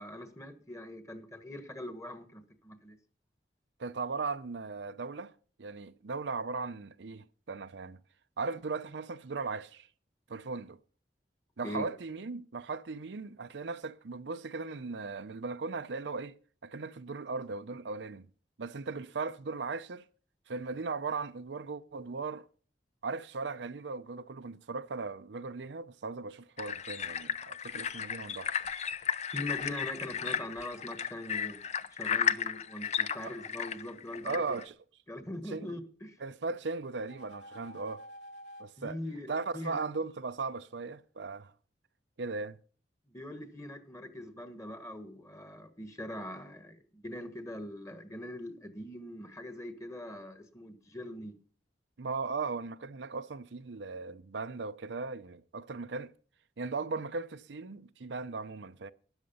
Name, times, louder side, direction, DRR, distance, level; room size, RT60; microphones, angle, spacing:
voice 1, 0.0-3.0 11.6-11.9 29.3-31.6 31.9-34.4 35.1-36.2 38.8-39.8 43.1-51.4, left 1 dB, 15° left, 1.4 m, -42 dB
voice 2, 3.8-5.3 5.6-8.0 8.4-9.9 10.3-10.8 11.6-16.4 16.6-18.3 18.6-20.1 20.5-22.5 23.0-28.6 33.2-33.4 34.2-34.7 35.5-35.8 36.2-38.1 38.6-39.0 39.3-41.5 42.2-42.6 52.0-56.1 56.6-58.9, right 4 dB, 75° right, 0.6 m, -37 dB
sound 1, 26.6-34.6, left 8 dB, 40° left, 0.6 m, -34 dB
sound 2, 36.8-38.7, equal, 85° left, 2.9 m, -51 dB
13.0 x 9.7 x 5.5 m
head